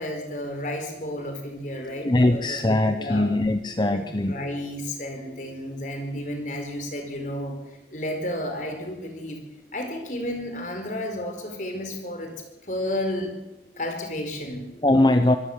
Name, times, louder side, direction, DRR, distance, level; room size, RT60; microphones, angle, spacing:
voice 1, 0.0-3.3 3.9-4.0 4.3-7.6 7.9-9.4 9.7-12.3 12.7-13.4 13.8-14.6, left 1 dB, 45° left, 4 dB, 4.7 m, -32 dB
voice 2, 2.0-4.4 14.8-15.4, left 1 dB, 25° left, 8 dB, 0.8 m, -21 dB
25.0 x 15.5 x 7.4 m, 0.99 s
head